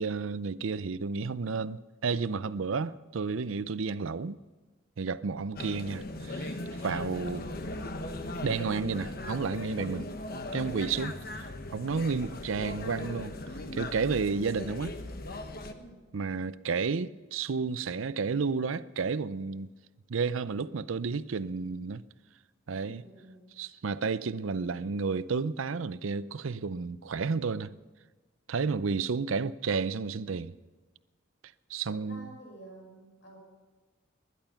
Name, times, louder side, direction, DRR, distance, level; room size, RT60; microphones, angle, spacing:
voice 1, 0.0-4.4 5.0-6.6 6.8-7.5 8.4-10.1 10.5-13.3 13.7-15.0 16.1-19.7 20.1-22.0 22.7-23.0 23.6-27.8 28.5-30.5 31.7-32.3, right 5 dB, 80° right, 0.6 m, -31 dB
sound 1, 5.6-15.7, left 2 dB, 50° left, 1.2 m, -38 dB
voice 2, 15.7-16.1 22.8-23.5 31.9-33.4, right 1 dB, 65° left, 5.9 m, -51 dB
21.0 x 11.0 x 5.7 m
head